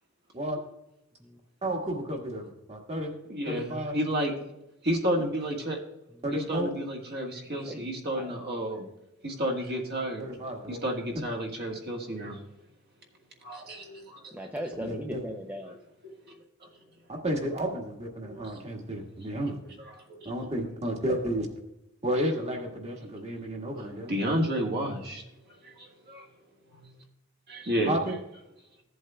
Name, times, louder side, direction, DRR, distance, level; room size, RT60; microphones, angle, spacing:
voice 1, 1.6-3.1 3.4-3.9 5.2-5.3 6.2-6.7 10.2-10.8 14.8-15.2 17.1-19.6 20.2-21.5 22.0-24.4 27.9-28.1, right 1 dB, 30° right, 1 dB, 1.5 m, -32 dB
voice 2, 3.3-4.3 4.8-5.8 6.3-8.8 9.2-10.3 10.7-12.4 13.4-14.3 16.0-16.1 18.2-18.6 19.8-20.3 24.1-25.2 25.6-26.2 26.7-26.9 27.5-27.9, equal, 45° right, 0 dB, 1.6 m, -31 dB
voice 3, 7.5-8.4 14.3-15.8, equal, 5° right, 2 dB, 0.5 m, -38 dB
15.0 x 7.8 x 2.2 m, 0.87 s
head